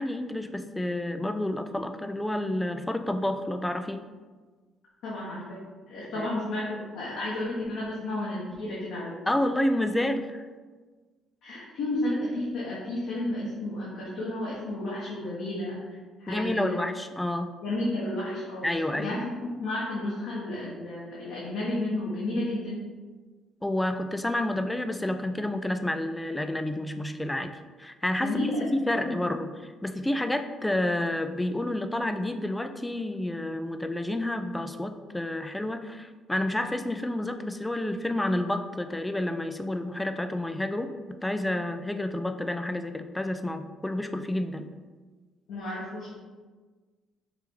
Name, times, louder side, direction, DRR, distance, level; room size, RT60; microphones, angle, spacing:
voice 1, 0.0-4.0 6.2-6.3 9.3-10.5 16.3-17.5 18.6-19.2 23.6-27.5 27.8-28.3 28.7-40.9 41.2-44.7, left 1 dB, 10° left, 8 dB, 0.4 m, -29 dB
voice 2, 5.0-5.6 5.9-9.2 11.4-16.8 17.6-22.8 28.2-29.2 45.5-46.2, left 1 dB, 80° left, -7 dB, 1.1 m, -32 dB
4.6 x 2.8 x 3.7 m, 1.4 s
cardioid pair, 80°, 0 cm